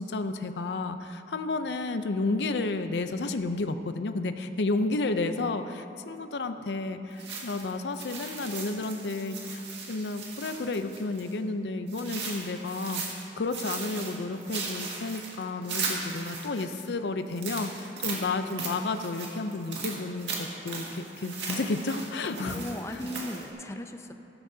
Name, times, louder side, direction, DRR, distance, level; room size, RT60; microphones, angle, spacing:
voice 1, 0.0-9.6 9.9-13.0 13.4-23.1, left 3 dB, 70° left, 9 dB, 0.5 m, -31 dB
sound 1, 7.2-11.3 11.9-13.3 13.5-16.8 17.3-23.5, right 4 dB, 85° right, 1.9 m, -37 dB
voice 2, 22.4-24.1, left 1 dB, 15° left, 7 dB, 0.5 m, -37 dB
14.5 x 13.0 x 2.8 m, 3.0 s
head